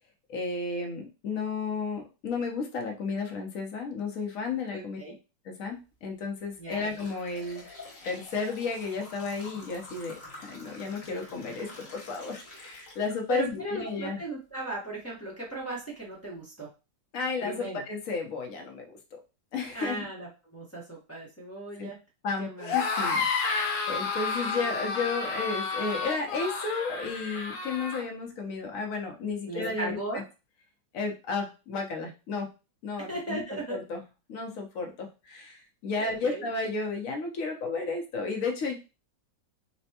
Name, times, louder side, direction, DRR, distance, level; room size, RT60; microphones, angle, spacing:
voice 1, 0.3-5.0 5.5-7.6 8.0-14.2 17.1-18.9 19.5-20.0 21.8-21.9 22.2-30.2 30.9-32.5 32.8-34.0 34.3-38.8, left 4 dB, 60° left, 2 dB, 0.9 m, -33 dB
voice 2, 4.7-5.1 6.6-6.8 13.3-16.7 17.4-17.8 19.7-22.0 22.4-22.7 29.4-30.2 33.1-33.8 36.0-36.5, right 2 dB, 15° left, -5 dB, 0.6 m, -37 dB
sound 1, 5.7-5.9 6.4-13.6 14.0-14.1 15.0-15.1 15.6-15.7 16.1-16.3, left 2 dB, 35° left, 1.0 m, -48 dB
sound 2, 22.6-28.0, left 4 dB, 75° left, 1.3 m, -30 dB
4.2 x 2.1 x 2.8 m, 0.30 s
omnidirectional pair, 2.0 m